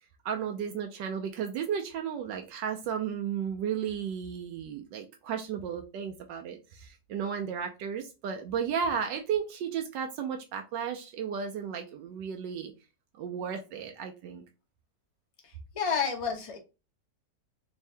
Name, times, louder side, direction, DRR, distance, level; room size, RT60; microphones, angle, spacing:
voice 1, 0.2-12.7 13.2-14.4, right 7 dB, 85° right, 1.2 m, -34 dB
voice 2, 15.4-16.6, left 6 dB, 45° left, 0.4 m, -31 dB
3.5 x 2.7 x 3.2 m
omnidirectional pair, 1.9 m